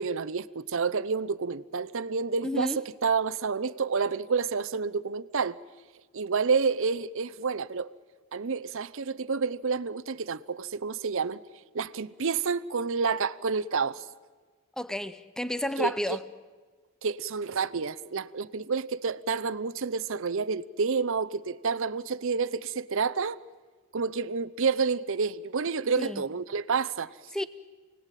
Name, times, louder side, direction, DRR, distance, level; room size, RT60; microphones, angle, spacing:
voice 1, 0.0-5.6 6.1-7.9 8.3-11.4 11.7-14.1 15.8-16.2 17.0-23.4 23.9-27.1, right 5 dB, 60° right, 0.7 m, -29 dB
voice 2, 2.4-2.8 14.8-16.2 26.0-26.2 27.3-27.4, left 1 dB, 5° left, 0.7 m, -31 dB
28.5 x 19.0 x 9.1 m
head